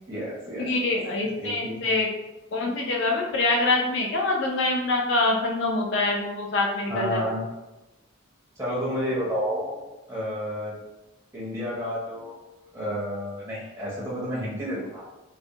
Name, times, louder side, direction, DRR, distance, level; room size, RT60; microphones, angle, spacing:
voice 1, 0.1-0.9 1.4-1.9 6.9-7.4 8.6-9.8 10.1-10.7 11.3-12.4 12.7-15.0, equal, 15° right, -6 dB, 0.5 m, -30 dB
voice 2, 0.6-2.1 2.5-7.2, left 2 dB, 60° left, -1 dB, 0.4 m, -25 dB
2.3 x 2.1 x 2.7 m, 1.0 s
head